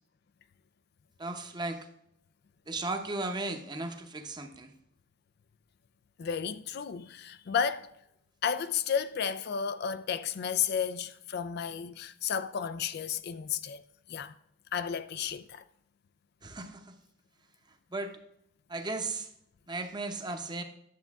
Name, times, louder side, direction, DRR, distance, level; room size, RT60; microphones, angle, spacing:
voice 1, 1.2-1.9 2.7-4.7 16.4-17.0 17.9-18.2 18.7-19.3 19.7-20.6, right 2 dB, 20° right, 0.8 m, -36 dB
voice 2, 6.2-7.9 8.4-13.8 14.1-14.3 14.7-15.6, left 7 dB, 55° left, 0.4 m, -32 dB
10.5 x 7.0 x 3.5 m
head